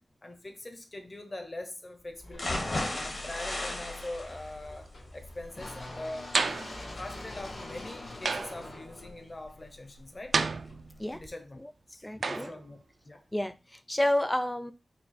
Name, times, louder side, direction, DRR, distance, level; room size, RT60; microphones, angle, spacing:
voice 1, 0.2-2.7 3.0-6.4 6.9-10.4 11.1-11.6 11.9-13.2, left 1 dB, 35° left, 0.8 m, -43 dB
sound 1, 2.2-10.2, left 2 dB, 85° left, 1.6 m, -45 dB
sound 2, 2.3-10.3 10.7-10.8 11.2-11.3, left 1 dB, 55° left, 1.3 m, -38 dB
sound 3, 6.3-6.8 8.2-8.7 10.3-11.1 12.2-12.6, right 4 dB, 70° right, 0.3 m, -30 dB
voice 2, 12.0-12.5 13.3-14.7, left 1 dB, 10° left, 0.4 m, -30 dB
4.3 x 2.3 x 4.1 m
wide cardioid pair, 80°, 0 cm